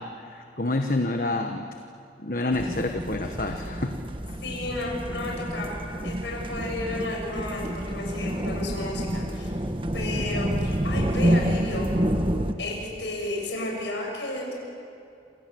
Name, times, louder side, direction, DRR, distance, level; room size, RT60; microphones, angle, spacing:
voice 1, 0.0-1.7 2.2-4.0, left 2 dB, 50° left, 4 dB, 1.3 m, -28 dB
sound 1, 2.5-12.5, equal, 30° right, 1.3 m, -28 dB
voice 2, 4.4-9.6 9.9-11.9 12.6-14.5, left 1 dB, 85° left, -1 dB, 7.4 m, -32 dB
28.0 x 27.5 x 7.7 m, 2.5 s
head